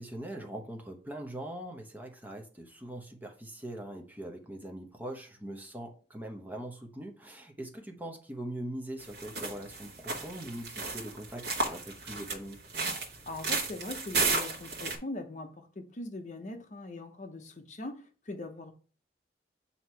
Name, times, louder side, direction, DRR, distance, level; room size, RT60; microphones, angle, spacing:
voice 1, 0.0-12.6, right 1 dB, 10° right, 0.7 m, -42 dB
sound 1, 9.0-15.0, right 3 dB, 70° right, 1.2 m, -33 dB
voice 2, 13.3-18.7, left 2 dB, 40° left, 0.7 m, -41 dB
7.8 x 2.8 x 4.5 m
head